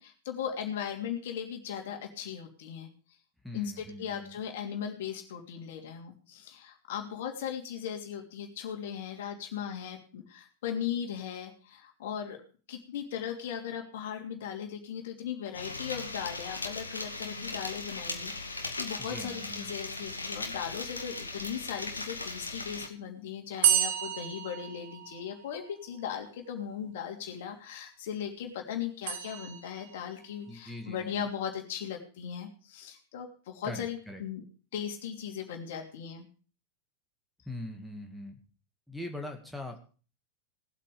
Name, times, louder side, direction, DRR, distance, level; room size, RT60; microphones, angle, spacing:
voice 1, 0.0-2.9 3.5-12.4 12.7-34.4 34.7-36.3, left 8 dB, 55° left, 3 dB, 2.9 m, -38 dB
voice 2, 3.4-4.4 19.0-19.7 30.5-31.2 33.6-34.2 37.5-38.4 38.9-39.8, left 1 dB, ahead, 1 dB, 2.1 m, -41 dB
sound 1, 15.5-22.9, left 3 dB, 80° left, 1.5 m, -38 dB
sound 2, 23.6-25.6 29.1-30.1, right 9 dB, 55° right, 1.6 m, -30 dB
18.5 x 8.5 x 5.1 m, 0.39 s
figure-of-eight pair, 90°, 0 cm